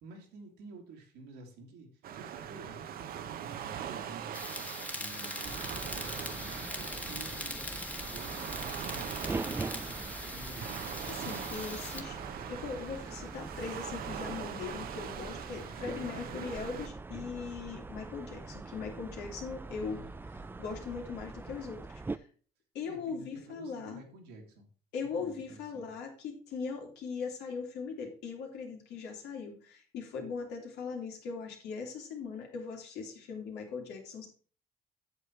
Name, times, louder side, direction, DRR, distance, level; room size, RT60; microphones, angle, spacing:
voice 1, 0.0-4.4 4.9-10.9 15.7-15.9 19.8-20.5 22.8-24.7 25.0-25.9, right 3 dB, 85° right, 2 dB, 2.4 m, -51 dB
Waves surf, 2.0-16.9, right 9 dB, 60° right, 0.9 m, -42 dB
sound 1, 4.3-12.0, left 1 dB, 10° left, 1.4 m, -41 dB
sound 2, 5.4-22.2, right 3 dB, 10° right, 0.4 m, -43 dB
voice 2, 11.1-12.2 12.5-20.0 20.3-22.3 22.7-24.0 24.9-34.3, left 5 dB, 80° left, 2 dB, 2.7 m, -40 dB
8.0 x 6.9 x 4.5 m, 0.41 s
cardioid pair, 110°, 17 cm